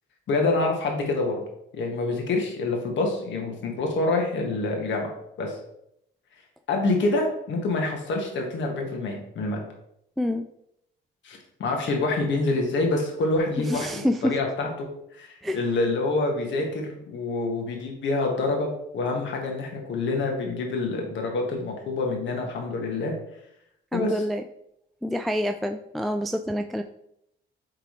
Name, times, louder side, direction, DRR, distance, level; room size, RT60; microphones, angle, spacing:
voice 1, 0.3-1.4 1.7-5.1 5.4-5.6 6.7-9.6 11.2-14.9 15.1-23.1 23.9-24.2, left 3 dB, 70° left, 1 dB, 1.7 m, -26 dB
voice 2, 13.7-14.3 15.4-15.6 23.9-24.4 25.0-26.8, left 1 dB, ahead, 5 dB, 0.3 m, -27 dB
8.9 x 3.8 x 3.2 m, 0.76 s
cardioid pair, 90°, 20 cm